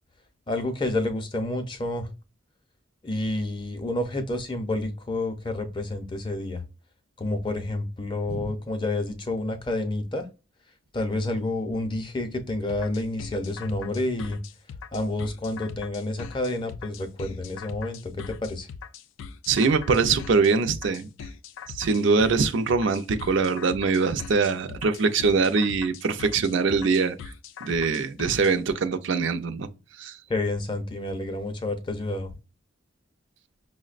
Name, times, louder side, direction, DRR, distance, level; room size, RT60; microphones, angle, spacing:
voice 1, 0.5-2.1 3.0-6.6 7.2-10.2 10.9-14.4 14.9-18.7 30.3-32.3, left 2 dB, 25° left, 0.5 m, -29 dB
sound 1, 12.7-28.5, left 6 dB, 80° left, 0.3 m, -41 dB
voice 2, 19.5-21.1 21.8-27.2 27.6-29.7 30.0-30.2, right 4 dB, 70° right, 0.4 m, -23 dB
5.6 x 2.1 x 2.4 m
head